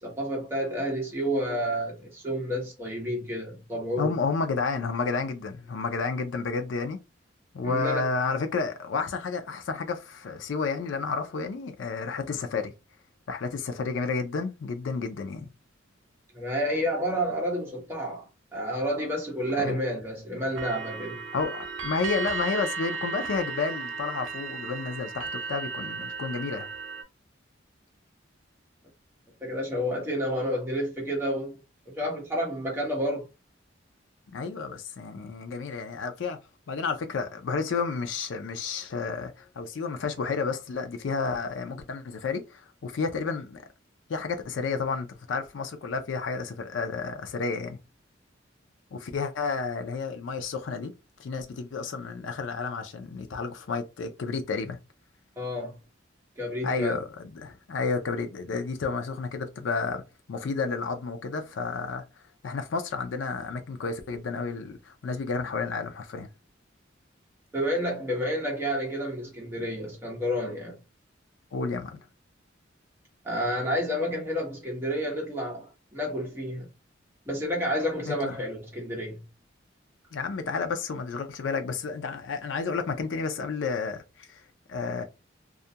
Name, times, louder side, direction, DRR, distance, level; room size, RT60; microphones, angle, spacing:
voice 1, 0.0-4.1 7.6-8.0 16.3-18.3 18.5-21.2 29.4-31.6 31.9-33.3 55.4-55.8 56.4-57.0 67.5-70.8 73.2-76.7 77.3-79.2, equal, 10° right, 0.9 m, -30 dB
voice 2, 4.0-7.0 7.5-12.7 13.3-15.5 19.6-19.8 21.3-26.7 34.3-36.4 36.7-43.6 44.1-47.8 48.9-50.9 51.2-54.8 56.6-60.0 60.3-62.0 62.4-66.3 71.5-72.0 78.1-78.4 80.1-84.4 84.7-85.0, left 4 dB, 75° left, 0.4 m, -31 dB
sound 1, 20.6-27.0, right 4 dB, 75° right, 0.5 m, -35 dB
2.4 x 2.1 x 2.7 m
head